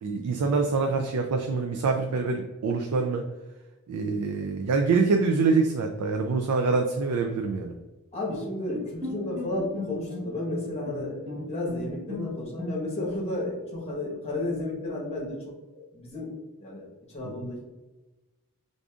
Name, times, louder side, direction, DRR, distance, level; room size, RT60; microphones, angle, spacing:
voice 1, 0.0-3.3 3.9-7.7 17.2-17.5, right 4 dB, 85° right, 3 dB, 0.3 m, -25 dB
voice 2, 8.1-15.4 15.7-16.3 16.6-17.7, left 2 dB, 30° left, -3 dB, 1.0 m, -33 dB
Bowed string instrument, 8.3-13.2, left 1 dB, 50° right, 1.1 m, -37 dB
4.8 x 2.6 x 2.3 m, 1.1 s
head